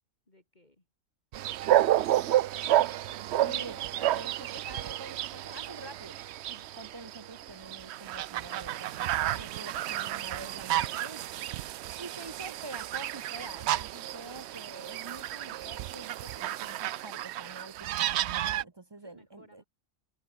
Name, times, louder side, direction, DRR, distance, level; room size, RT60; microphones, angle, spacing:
voice 1, 0.3-0.8 1.7-2.6 19.0-19.6, left 1 dB, 30° left, 3.7 m, -59 dB
sound 1, 1.3-18.6, right 13 dB, 65° right, 0.7 m, -31 dB
voice 2, 3.4-6.2 6.5-11.3 12.0-19.6, right 2 dB, 30° right, 0.5 m, -46 dB
omnidirectional pair, 1.4 m